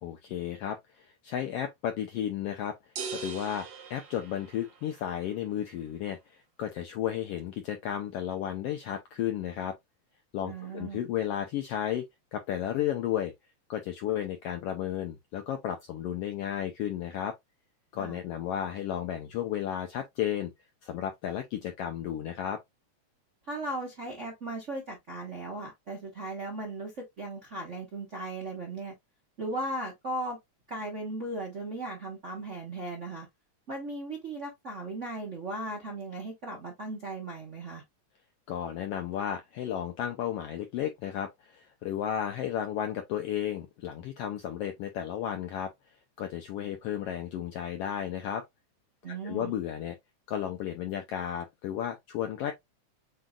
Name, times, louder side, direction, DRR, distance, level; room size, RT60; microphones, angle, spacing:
voice 1, 0.0-2.8 3.1-9.7 10.3-12.0 12.3-13.3 13.7-17.4 17.9-20.5 20.8-22.6 38.5-45.7 46.2-48.4 49.1-50.0 50.3-52.5, left 10 dB, 75° left, 1.4 m, -33 dB
sound 1, 3.0-5.0, right 6 dB, 65° right, 1.1 m, -40 dB
voice 2, 10.4-11.0 18.0-18.2 23.5-28.9 29.4-30.4 30.7-33.3 33.7-37.8 49.0-49.5, right 2 dB, 45° right, 0.9 m, -37 dB
7.6 x 2.8 x 2.3 m
omnidirectional pair, 3.3 m